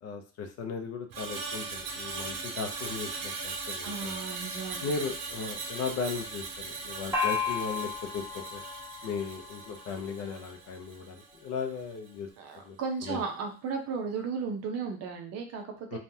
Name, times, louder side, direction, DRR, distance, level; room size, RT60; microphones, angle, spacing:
voice 1, 0.0-4.2 4.8-8.6 9.0-12.3 12.6-12.8 13.0-13.2 15.9-16.0, left 5 dB, 55° left, 6 dB, 0.6 m, -37 dB
Screech, 1.1-11.5 11.8-12.1, right 4 dB, 90° right, 0.9 m, -39 dB
voice 2, 3.8-4.9 9.0-9.1 12.4-16.0, right 5 dB, 55° right, 4 dB, 0.7 m, -35 dB
Gong, 7.1-10.6, left 5 dB, 10° right, 1.1 m, -34 dB
3.2 x 2.3 x 2.7 m, 0.37 s
cardioid pair, 135°, 30 cm